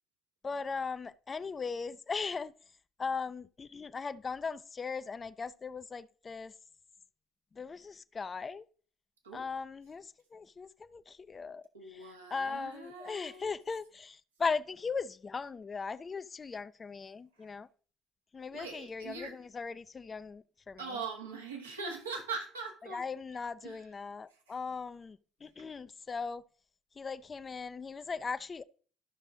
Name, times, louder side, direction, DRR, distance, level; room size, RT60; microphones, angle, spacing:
voice 1, 0.4-2.5 3.0-6.5 7.5-8.7 9.3-11.6 11.9-17.7 18.3-20.8 22.9-26.4 27.0-28.6, left 5 dB, 30° left, 0.4 m, -38 dB
voice 2, 11.7-13.5 17.3-17.6 18.5-19.4 20.8-23.0 23.6-23.9 24.3-24.6, right 4 dB, 85° right, 1.7 m, -42 dB
12.5 x 6.1 x 3.8 m
figure-of-eight pair, 55°, 0 cm